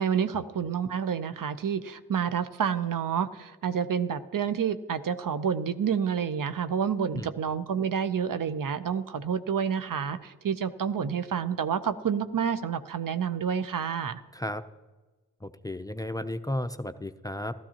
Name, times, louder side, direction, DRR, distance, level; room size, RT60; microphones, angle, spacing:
voice 1, 0.0-14.2, right 7 dB, 60° right, 12 dB, 0.7 m, -29 dB
voice 2, 15.4-17.5, left 1 dB, 10° left, 11 dB, 0.5 m, -34 dB
15.0 x 13.0 x 2.9 m, 1.2 s
cardioid pair, 40°, 37 cm